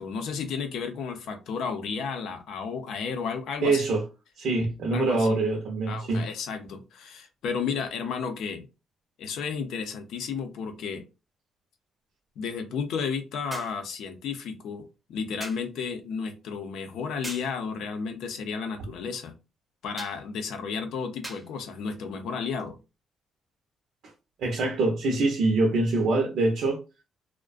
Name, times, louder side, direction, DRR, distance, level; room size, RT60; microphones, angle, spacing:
voice 1, 0.0-3.8 4.9-5.4 5.9-8.7 9.2-11.0 12.4-14.8 15.1-19.3 19.8-22.8, left 6 dB, 80° left, 0.5 m, -33 dB
voice 2, 3.6-4.0 4.4-6.2 24.4-26.8, right 2 dB, 75° right, 0.6 m, -24 dB
sound 1, 13.5-13.9 15.4-15.7 17.2-17.6 20.0-20.2 21.2-21.5 22.6-22.7, right 2 dB, 20° right, 0.6 m, -40 dB
2.4 x 2.1 x 2.4 m
cardioid pair, 90°, 0 cm